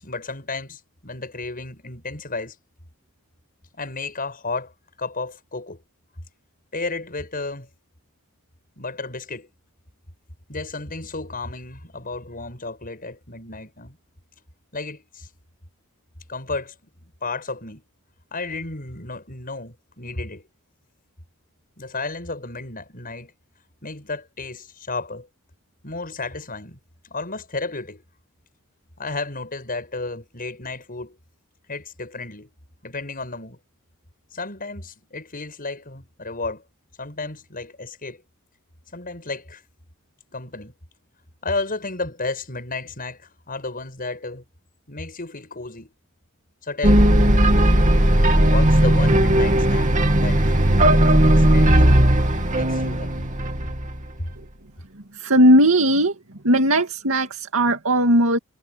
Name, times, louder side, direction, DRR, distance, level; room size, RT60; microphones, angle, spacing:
voice 1, 0.0-2.6 3.7-4.7 5.0-5.8 6.7-7.7 8.8-9.5 10.5-14.0 14.7-15.3 16.3-16.7 17.0-17.8 18.3-20.4 21.8-23.3 23.8-25.3 25.8-26.8 27.1-28.0 29.0-31.2 31.7-32.5 32.8-33.6 34.3-36.6 37.0-38.2 38.9-39.6 40.3-40.7 41.4-44.4 44.9-45.9 46.6-47.1 48.5-50.4 51.1-52.0 52.5-53.3, left 3 dB, 40° left, 7.7 m, -32 dB
sound 1, 46.8-54.1, right 1 dB, 35° right, 2.7 m, -16 dB
voice 2, 55.2-56.1 56.4-58.4, right 1 dB, 70° right, 2.4 m, -17 dB
head